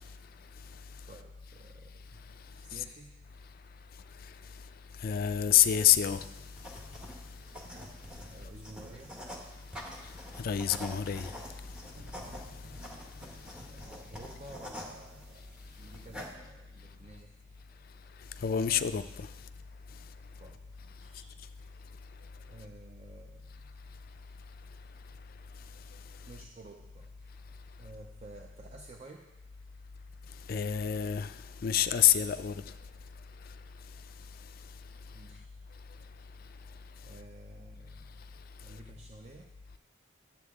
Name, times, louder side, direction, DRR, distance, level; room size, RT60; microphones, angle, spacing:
voice 1, 1.1-2.2 2.5-3.2 8.3-9.2 13.7-17.4 20.4-21.4 22.5-23.5 26.3-27.1 27.8-29.3 35.1-35.5 37.0-38.2 38.6-39.5, right 2 dB, 35° right, 0.5 m, -52 dB
voice 2, 5.0-6.2 10.4-11.3 18.4-19.0 30.5-31.3 31.6-32.5, left 10 dB, 45° left, 0.3 m, -26 dB
sound 1, 5.6-16.3, equal, 5° right, 1.0 m, -47 dB
sound 2, 11.9-25.7, equal, 85° right, 1.4 m, -61 dB
11.0 x 7.4 x 3.5 m
head